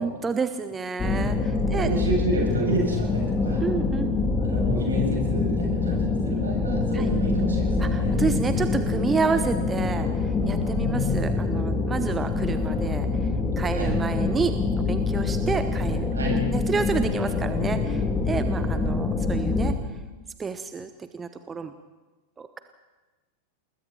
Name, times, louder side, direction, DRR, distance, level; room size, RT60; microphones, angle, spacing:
voice 1, 0.0-1.9 3.6-4.2 6.9-7.1 7.8-13.1 13.6-14.5 14.9-16.1 16.5-19.7 20.4-21.7 22.4-22.6, right 5 dB, 15° right, 10 dB, 1.0 m, -29 dB
sound 1, 1.0-19.7, left 3 dB, 15° left, 2.3 m, -25 dB
voice 2, 1.7-3.6 4.4-8.2 10.7-11.2 13.7-14.0 16.1-16.5, right 1 dB, 70° right, -2 dB, 8.0 m, -29 dB
28.0 x 21.0 x 4.5 m, 1.2 s
figure-of-eight pair, 90°, 0 cm